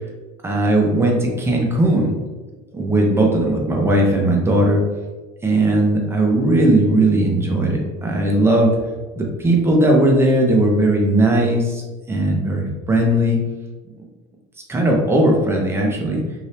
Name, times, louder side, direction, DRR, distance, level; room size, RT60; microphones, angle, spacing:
voice 1, 0.4-2.1 2.7-4.8 5.4-8.7 9.2-11.8 12.1-13.4 14.7-16.2, right 1 dB, 15° right, -1 dB, 0.8 m, -17 dB
2.8 x 2.6 x 3.3 m, 1.2 s
supercardioid pair, 110°, 18 cm